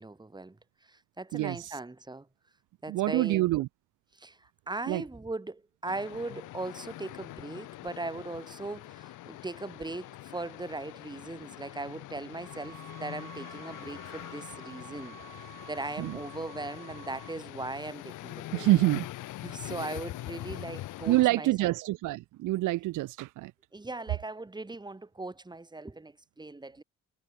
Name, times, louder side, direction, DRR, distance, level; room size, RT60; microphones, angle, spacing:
voice 1, 0.0-2.3 2.8-3.5 4.1-18.7 19.4-21.7 23.7-26.8, right 2 dB, 15° right, 2.2 m, -39 dB
voice 2, 1.3-1.7 2.9-3.7 4.9-5.0 16.0-16.2 18.5-19.1 21.1-23.5, right 18 dB, 85° right, 0.7 m, -26 dB
sound 1, 5.9-21.3, left 16 dB, 90° left, 2.0 m, -43 dB
sound 2, 12.4-17.4, right 10 dB, 60° right, 3.3 m, -51 dB
cardioid pair, 90°, 30 cm